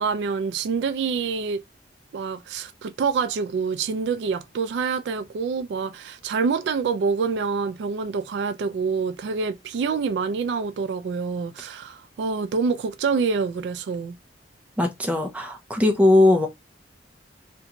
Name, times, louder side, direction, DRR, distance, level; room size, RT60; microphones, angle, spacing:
voice 1, 0.0-1.6 2.1-14.1, right 5 dB, 70° right, 0.3 m, -26 dB
voice 2, 14.8-16.5, left 2 dB, 10° right, 0.5 m, -19 dB
2.5 x 2.2 x 2.8 m
head